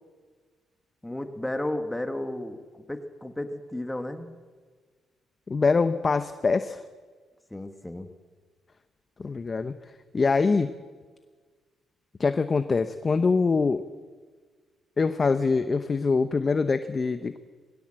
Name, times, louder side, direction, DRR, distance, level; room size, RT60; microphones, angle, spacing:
voice 1, 1.0-4.3 7.5-8.1, left 1 dB, 10° left, 7 dB, 1.6 m, -33 dB
voice 2, 5.5-6.8 9.2-9.7 10.1-10.7 12.2-13.9 15.0-17.4, left 4 dB, 35° left, 10 dB, 0.8 m, -24 dB
21.0 x 16.5 x 7.7 m, 1.5 s
cardioid pair, 90°, 0 cm